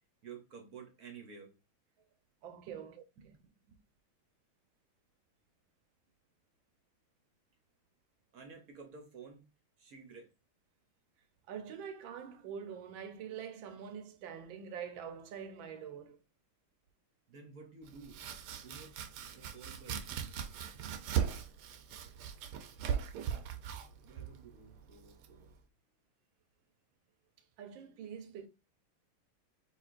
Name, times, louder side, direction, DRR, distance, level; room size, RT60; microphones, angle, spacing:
voice 1, 0.2-1.5 2.7-2.8 3.2-3.3 3.7-3.8 8.3-9.5 9.8-10.3 17.3-18.2 18.5-19.0 19.3-20.0 24.0-25.5, right 5 dB, 55° right, 1.2 m, -52 dB
voice 2, 2.4-3.0 11.5-16.2 27.6-28.5, right 7 dB, 75° right, 1.4 m, -45 dB
Domestic sounds home sounds, 17.8-25.6, right 8 dB, 90° right, 1.6 m, -39 dB
5.1 x 3.6 x 2.5 m
omnidirectional pair, 2.3 m